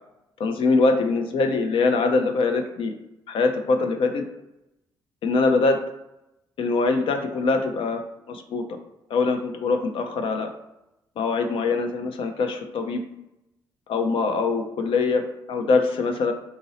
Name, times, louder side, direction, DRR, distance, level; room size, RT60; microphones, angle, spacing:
voice 1, 0.4-2.9 3.3-4.2 5.2-5.8 6.6-8.6 9.1-10.5 11.2-13.0 13.9-16.3, left 3 dB, 65° left, 6 dB, 0.5 m, -23 dB
2.6 x 2.0 x 3.9 m, 0.91 s
supercardioid pair, 65°, 10 cm